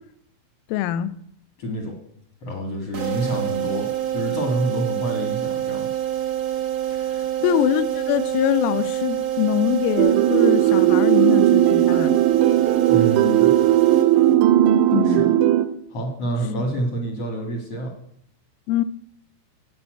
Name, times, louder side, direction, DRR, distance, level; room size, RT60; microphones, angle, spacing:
voice 1, 0.7-1.1 7.1-12.2 14.9-15.3 16.6-16.7 18.7-18.8, left 12 dB, 85° left, 3.2 m, -23 dB
voice 2, 1.6-2.0 2.4-5.9 12.9-13.5 15.0-15.2 15.9-17.9, right 1 dB, 55° left, 1.6 m, -27 dB
sound 1, 2.9-14.6, right 12 dB, 60° right, 1.4 m, -26 dB
sound 2, 10.0-15.7, right 13 dB, 80° right, 2.7 m, -17 dB
14.5 x 5.5 x 9.0 m
omnidirectional pair, 5.8 m